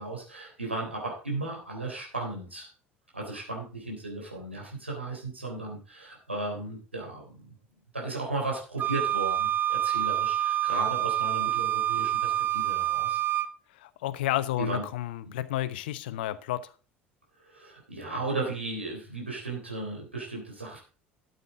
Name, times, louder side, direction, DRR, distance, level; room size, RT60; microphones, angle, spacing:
voice 1, 0.0-2.7 3.1-7.6 7.9-13.2 14.6-14.8 17.4-20.8, right 2 dB, 85° right, 3.6 m, -35 dB
Wind instrument woodwind instrument, 8.8-13.5, right 12 dB, 30° right, 0.8 m, -27 dB
voice 2, 13.8-16.6, left 14 dB, 65° left, 0.9 m, -31 dB
13.0 x 8.2 x 3.8 m
figure-of-eight pair, 65°, 6 cm